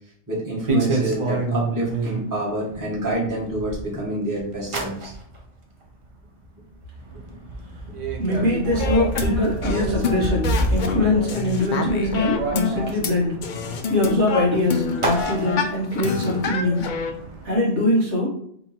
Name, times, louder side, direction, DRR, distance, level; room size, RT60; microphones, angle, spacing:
voice 1, 0.3-5.1, right 1 dB, 15° right, -5 dB, 1.3 m, -27 dB
sound 1, 0.7-2.2 2.7-4.0 4.4-5.4 5.8-6.2 6.6-6.7 7.0-17.5, right 2 dB, 35° right, 0.7 m, -29 dB
voice 2, 8.2-13.6 13.9-16.8 17.4-18.3, left 1 dB, 80° right, -4 dB, 1.8 m, -22 dB
sound 2, 8.8-13.1 13.4-17.1, left 5 dB, 55° left, 0.6 m, -28 dB
3.6 x 3.0 x 4.2 m, 0.69 s
omnidirectional pair, 1.2 m